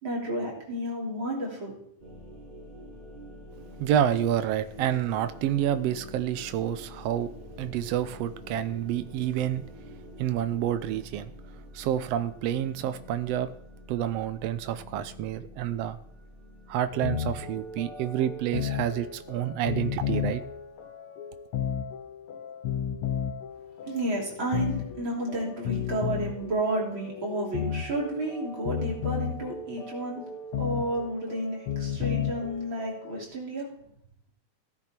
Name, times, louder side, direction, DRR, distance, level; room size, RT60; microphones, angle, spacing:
voice 1, 0.0-1.7 23.8-30.2 30.6-33.7, right 1 dB, 40° right, -3 dB, 3.7 m, -31 dB
sound 1, 2.0-20.9, left 1 dB, 20° right, 5.0 m, -47 dB
voice 2, 3.5-7.3 7.6-9.6 10.2-11.3 11.7-13.5 13.9-16.0 16.7-20.4, right 11 dB, 80° right, 11 dB, 1.4 m, -28 dB
sound 2, 16.9-33.2, left 8 dB, 65° left, 1.4 m, -34 dB
16.5 x 9.8 x 4.4 m, 0.71 s
omnidirectional pair, 3.5 m